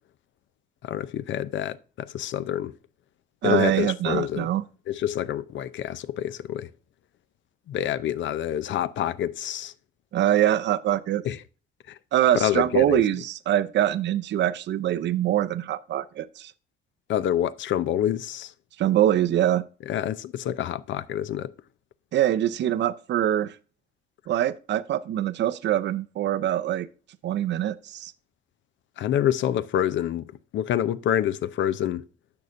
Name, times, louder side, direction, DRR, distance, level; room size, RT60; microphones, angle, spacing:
voice 1, 0.8-2.7 3.4-4.5 4.9-6.7 7.7-9.7 11.2-11.4 11.9-12.0 12.3-13.0 17.1-18.5 19.9-21.5 29.0-30.3 30.5-32.0, left 11 dB, 70° left, 0.5 m, -27 dB
voice 2, 3.4-4.6 10.1-11.2 12.1-16.5 18.8-19.7 22.1-23.6 24.3-26.9 27.2-28.1, right 12 dB, 65° right, 0.5 m, -24 dB
10.5 x 6.9 x 2.5 m
cardioid pair, 90°, 20 cm